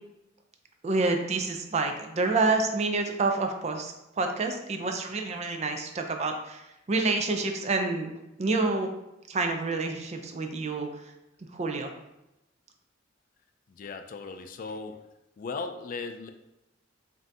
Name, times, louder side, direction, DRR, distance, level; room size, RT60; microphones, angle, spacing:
voice 1, 0.8-8.1 8.4-8.9 9.3-11.0 11.5-11.9, right 3 dB, 35° right, 4 dB, 0.4 m, -28 dB
voice 2, 13.7-15.0 15.4-16.3, left 4 dB, 45° left, 7 dB, 0.3 m, -37 dB
5.3 x 2.6 x 2.7 m, 0.91 s
head